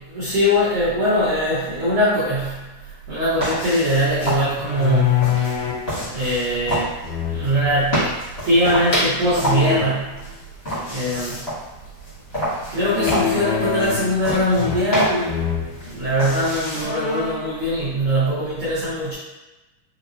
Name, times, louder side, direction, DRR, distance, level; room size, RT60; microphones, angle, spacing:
voice 1, 0.1-2.7 3.1-5.3 6.1-6.9 7.3-8.1 8.4-10.2 10.9-11.4 12.7-15.5 15.8-19.1, equal, 80° right, -11 dB, 1.2 m, -21 dB
sound 1, 3.3-16.8, equal, 50° left, 0.7 m, -28 dB
sound 2, 4.5-5.9 7.0-7.8 9.2-9.9 12.8-14.2 14.5-15.0 15.3-15.7 16.3-16.4 16.7-17.5, left 8 dB, 80° left, 2.0 m, -24 dB
5.4 x 2.0 x 2.5 m, 1.1 s
omnidirectional pair, 3.7 m